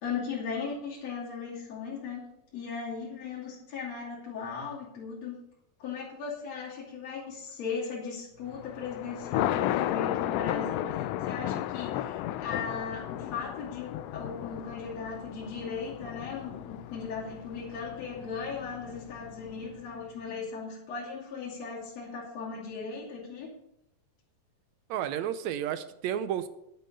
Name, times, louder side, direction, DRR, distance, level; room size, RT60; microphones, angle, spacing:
voice 1, 0.0-2.3 2.5-5.3 5.8-23.5, left 5 dB, 60° left, -7 dB, 3.7 m, -37 dB
Thunder, 8.5-19.8, left 13 dB, 80° left, 1.5 m, -34 dB
voice 2, 24.9-26.5, right 10 dB, 80° right, 12 dB, 1.9 m, -31 dB
10.5 x 7.8 x 6.5 m, 0.83 s
omnidirectional pair, 3.3 m